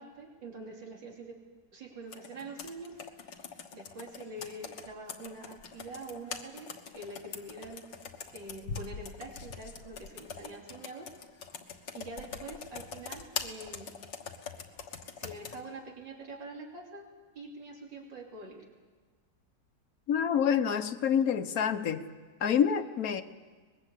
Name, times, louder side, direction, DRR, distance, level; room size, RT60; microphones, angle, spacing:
voice 1, 0.0-1.4 1.7-3.0 3.7-7.8 8.3-11.1 11.9-13.9 15.2-17.1 17.4-18.7, right 2 dB, 90° right, 0 dB, 3.6 m, -45 dB
Computer keyboard, 2.1-15.6, left 5 dB, 85° left, 2.1 m, -43 dB
voice 2, 20.1-22.0 22.4-23.2, left 8 dB, 55° left, 10 dB, 1.4 m, -27 dB
23.5 x 21.0 x 8.2 m, 1.4 s
omnidirectional pair, 1.9 m